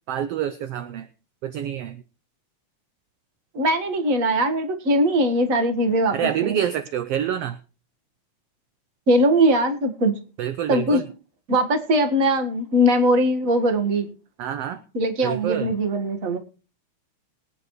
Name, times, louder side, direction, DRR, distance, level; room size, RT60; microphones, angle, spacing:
voice 1, 0.1-1.1 1.4-2.0 6.1-7.6 10.4-11.0 14.4-14.8 15.2-15.7, right 10 dB, 75° right, 1.5 m, -27 dB
voice 2, 3.5-6.2 6.4-6.6 9.1-10.2 10.7-11.0 11.5-14.1 14.9-16.4, equal, 35° right, 1.5 m, -20 dB
22.0 x 9.5 x 3.1 m
omnidirectional pair, 3.5 m